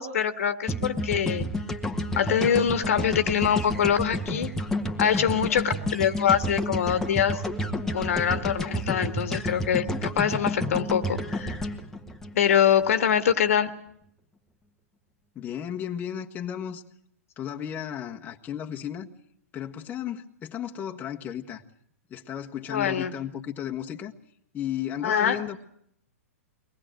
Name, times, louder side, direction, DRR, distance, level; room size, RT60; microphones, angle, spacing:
voice 1, 0.0-1.5 2.1-4.5 5.0-7.4 7.9-11.6 12.3-13.7 22.7-23.1 25.0-25.4, left 8 dB, 65° left, 1.7 m, -24 dB
sound 1, 0.7-12.9, left 1 dB, 5° left, 1.6 m, -30 dB
voice 2, 15.3-16.8 17.4-19.1 19.5-21.6 22.1-24.1 24.5-25.6, left 9 dB, 25° left, 1.5 m, -34 dB
23.5 x 19.5 x 7.7 m
hypercardioid pair, 115°, 8 cm